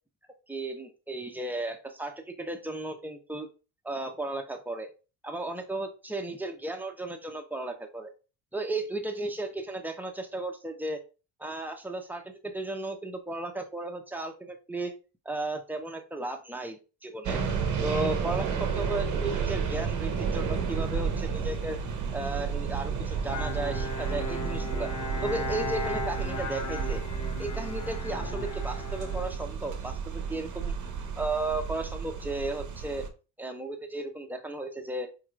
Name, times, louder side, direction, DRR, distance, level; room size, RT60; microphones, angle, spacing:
voice 1, 0.5-3.5 3.8-4.9 5.2-8.1 8.5-11.0 11.4-14.9 15.2-17.4 17.8-21.8 22.1-24.9 25.2-27.0 27.4-30.7 31.2-33.0 33.4-35.1, right 2 dB, 5° right, 4 dB, 0.8 m, -34 dB
sound 1, 17.2-33.1, right 6 dB, 50° right, 0.9 m, -32 dB
Bowed string instrument, 23.3-30.0, left 2 dB, 45° left, 0.9 m, -37 dB
4.5 x 2.9 x 2.5 m, 0.33 s
supercardioid pair, 60°, 40 cm